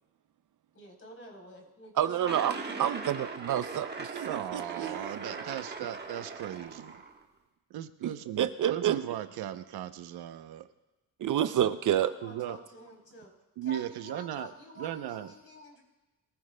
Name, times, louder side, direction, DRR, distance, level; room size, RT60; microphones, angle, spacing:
voice 1, 0.7-3.1 11.8-13.3 13.6-15.8, left 1 dB, 35° left, 1 dB, 3.6 m, -49 dB
voice 2, 2.0-2.5 2.8-5.1 8.4-9.0 11.2-12.1, right 10 dB, 55° right, 12 dB, 0.5 m, -28 dB
sound 1, 2.3-7.2, right 4 dB, 25° right, 1.2 m, -40 dB
voice 3, 4.1-7.0 7.7-10.7 11.6-11.8 12.2-12.6 13.6-14.5 14.8-15.3, right 11 dB, 90° right, 10 dB, 0.8 m, -37 dB
23.0 x 15.0 x 2.2 m, 1.1 s
cardioid pair, 125°, 37 cm